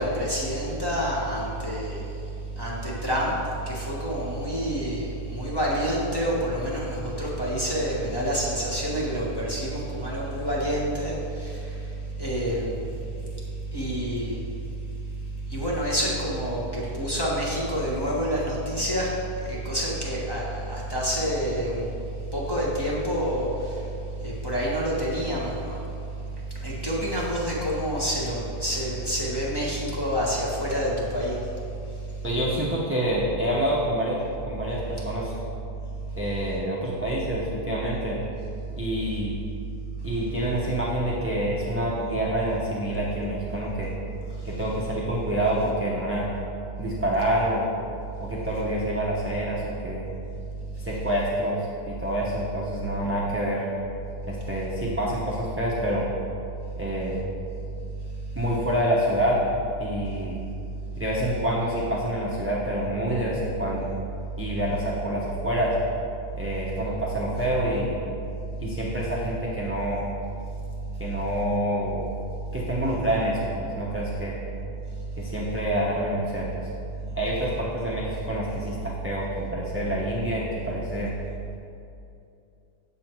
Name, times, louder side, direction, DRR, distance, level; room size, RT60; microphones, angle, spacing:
voice 1, 0.0-2.0 2.6-3.3 3.7-11.2 12.2-12.8 13.7-14.4 15.5-19.1 19.4-21.9 22.3-23.5 24.2-25.8 26.6-31.3, equal, 15° left, -6 dB, 1.4 m, -27 dB
voice 2, 32.2-35.3 36.2-38.2 38.8-39.4 40.0-43.9 44.4-46.3 46.8-47.7 48.2-50.1 50.8-51.6 51.9-53.6 54.3-56.1 56.8-57.2 58.3-59.4 59.8-60.4 61.0-63.9 64.4-65.7 66.4-68.0 68.6-70.0 71.0-72.0 72.5-74.4 75.2-76.7 77.2-81.1, equal, 10° right, -6 dB, 0.7 m, -27 dB
7.7 x 7.1 x 4.6 m, 2.6 s
omnidirectional pair, 1.7 m